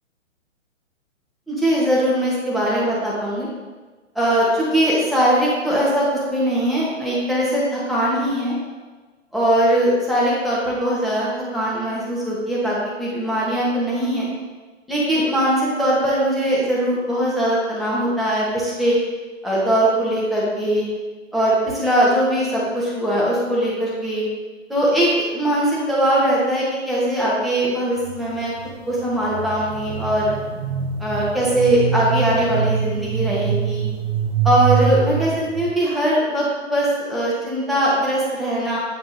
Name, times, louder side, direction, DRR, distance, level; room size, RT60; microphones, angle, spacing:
voice 1, 1.5-3.5 4.1-8.5 9.3-14.3 14.9-19.0 19.4-20.8 21.3-24.2 24.7-28.5 28.9-30.3 31.0-33.9 34.4-38.8, right 1 dB, ahead, -7 dB, 1.1 m, -20 dB
sound 1, 28.0-35.7, right 7 dB, 50° right, 0.8 m, -24 dB
8.4 x 4.6 x 2.6 m, 1.3 s
hypercardioid pair, 135°, 38 cm